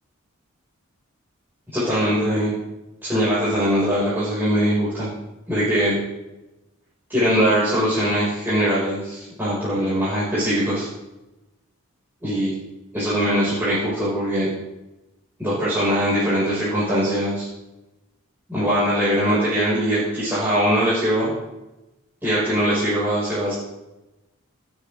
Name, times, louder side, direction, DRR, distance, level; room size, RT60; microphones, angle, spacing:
voice 1, 1.7-2.5 3.0-5.1 5.5-6.0 7.1-10.9 12.2-12.5 12.9-14.5 15.4-17.5 18.5-21.3 22.2-23.5, equal, 10° right, -11 dB, 6.8 m, -21 dB
28.5 x 9.6 x 4.0 m, 0.99 s
head